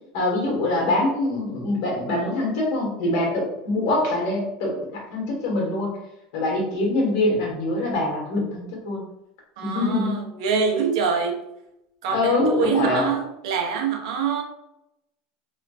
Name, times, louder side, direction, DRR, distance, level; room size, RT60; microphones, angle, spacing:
voice 1, 0.1-5.9 6.3-9.0 9.6-10.2 12.1-13.1, left 2 dB, 65° left, -1 dB, 1.4 m, -24 dB
voice 2, 9.6-11.4 12.0-14.4, right 6 dB, 80° right, 3 dB, 0.6 m, -25 dB
3.2 x 3.0 x 2.5 m, 0.84 s
supercardioid pair, 165°, 3 cm